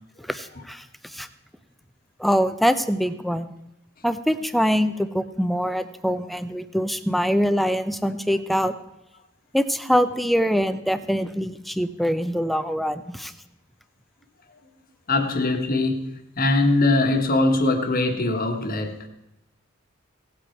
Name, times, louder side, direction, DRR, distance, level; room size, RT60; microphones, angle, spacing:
voice 1, 0.3-1.3 2.2-3.5 4.0-8.7 9.5-13.3, equal, ahead, 11 dB, 0.5 m, -24 dB
voice 2, 15.1-16.1 16.4-19.1, left 2 dB, 45° left, 5 dB, 1.4 m, -21 dB
17.5 x 7.9 x 4.5 m, 0.88 s
head